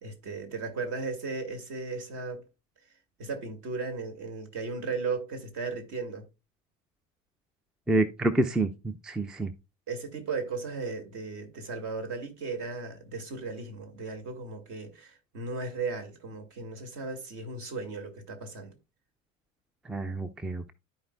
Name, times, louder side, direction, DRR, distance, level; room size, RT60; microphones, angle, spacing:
voice 1, 0.0-2.4 3.2-6.2 9.9-18.8, right 4 dB, 45° right, 2.2 m, -36 dB
voice 2, 7.9-9.5 19.9-20.7, right 2 dB, ahead, 0.4 m, -28 dB
13.5 x 4.6 x 2.2 m
figure-of-eight pair, 75°, 40 cm